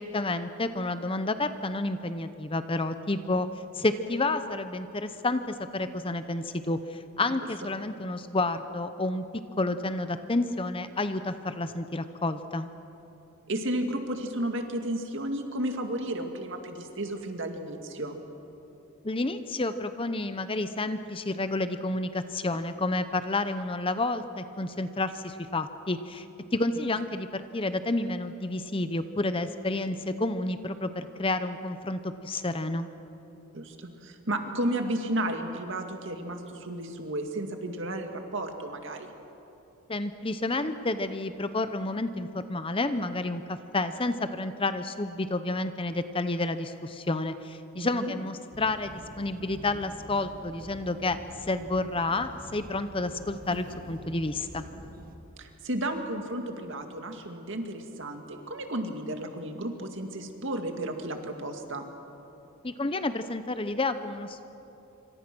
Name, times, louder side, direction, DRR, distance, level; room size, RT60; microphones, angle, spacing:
voice 1, 0.0-3.5 3.7-9.2 9.6-12.7 19.0-26.3 26.5-32.9 39.9-51.2 51.5-54.6 62.6-64.5, left 2 dB, 25° left, 10 dB, 0.8 m, -30 dB
voice 2, 13.5-18.2 33.5-39.1 47.8-48.1 55.4-61.8, right 1 dB, 55° right, 5 dB, 2.2 m, -33 dB
sound 1, 48.5-55.2, right 1 dB, 40° right, 1.7 m, -46 dB
26.5 x 25.0 x 6.2 m, 3.0 s
head